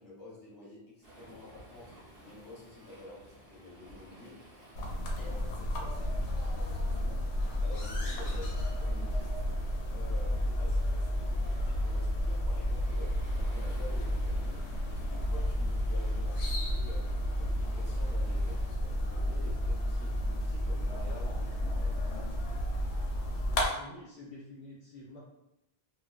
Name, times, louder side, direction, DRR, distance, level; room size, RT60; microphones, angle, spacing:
voice 1, 0.0-2.0 2.2-4.4 5.2-9.3 9.9-22.3, left 2 dB, 20° left, -8 dB, 0.9 m, -50 dB
Waves surf, 1.0-18.7, right 1 dB, 70° right, 0.9 m, -55 dB
sound 1, 4.8-23.7, left 1 dB, 90° left, 0.9 m, -31 dB
voice 2, 23.4-25.2, left 2 dB, 55° left, -7 dB, 0.7 m, -49 dB
2.4 x 2.2 x 2.3 m, 0.88 s
omnidirectional pair, 1.1 m